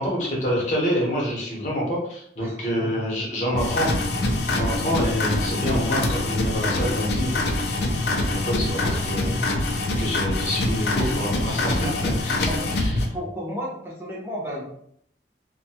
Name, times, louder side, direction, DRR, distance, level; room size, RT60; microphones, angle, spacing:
voice 1, 0.0-3.9 4.6-11.9 12.2-12.3 12.7-12.9, equal, 40° left, -4 dB, 0.8 m, -27 dB
voice 2, 2.4-2.9 11.0-12.0 12.5-12.6 13.1-14.6, equal, 15° right, -5 dB, 0.7 m, -34 dB
sound 1, 3.5-13.1, left 2 dB, 70° left, 0.4 m, -25 dB
2.6 x 2.2 x 2.7 m, 0.69 s
head